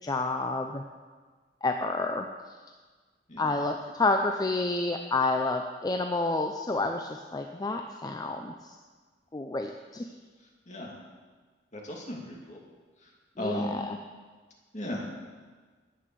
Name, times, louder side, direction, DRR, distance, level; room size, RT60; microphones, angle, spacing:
voice 1, 0.0-0.8 1.6-2.6 3.4-8.8 9.3-10.0 13.4-14.0, left 3 dB, 20° left, 4 dB, 0.5 m, -29 dB
voice 2, 10.7-11.0 11.7-12.6 13.0-13.1 13.4-13.8 14.7-15.0, equal, 40° left, -1 dB, 2.4 m, -35 dB
10.5 x 8.8 x 6.9 m, 1.4 s
head